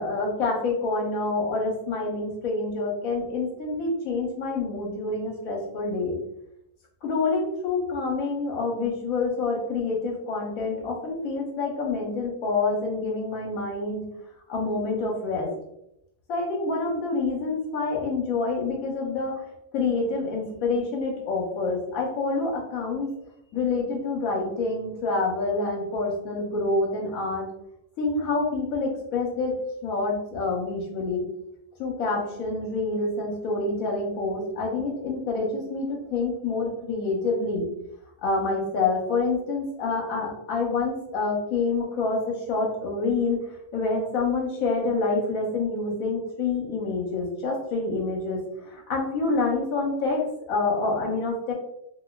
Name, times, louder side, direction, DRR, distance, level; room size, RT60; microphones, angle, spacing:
voice 1, 0.0-6.2 7.0-14.0 14.5-15.5 16.3-19.4 19.7-23.1 23.5-27.5 28.0-31.2 31.8-37.7 38.2-43.4 43.7-51.5, left 3 dB, 75° left, -1 dB, 1.2 m, -27 dB
3.0 x 2.6 x 2.2 m, 0.81 s
omnidirectional pair, 1.5 m